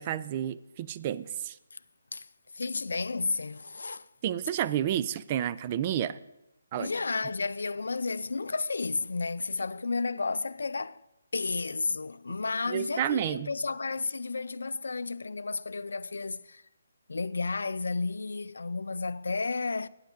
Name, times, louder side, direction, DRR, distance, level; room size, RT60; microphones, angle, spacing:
voice 1, 0.0-1.6 4.2-6.2 6.7-6.9 12.7-13.5, right 10 dB, 30° right, 0.4 m, -30 dB
voice 2, 2.5-4.1 6.7-11.0 11.3-16.6 17.1-19.9, left 4 dB, 80° left, 0.4 m, -32 dB
10.5 x 9.0 x 5.1 m
hypercardioid pair, 155°, 0 cm